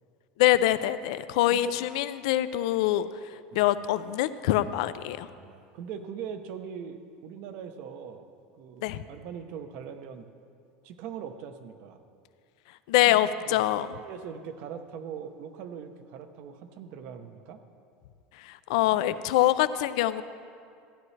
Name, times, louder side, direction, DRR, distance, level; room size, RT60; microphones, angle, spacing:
voice 1, 0.4-3.1 3.5-5.3 8.8-9.0 12.9-13.9 18.4-20.2, left 14 dB, 75° left, 14 dB, 0.4 m, -24 dB
voice 2, 5.3-8.3 8.5-10.3 10.8-12.0 13.1-13.7 14.0-17.6, right 7 dB, 55° right, 8 dB, 0.7 m, -41 dB
14.5 x 9.6 x 3.2 m, 2.3 s
supercardioid pair, 140°, 3 cm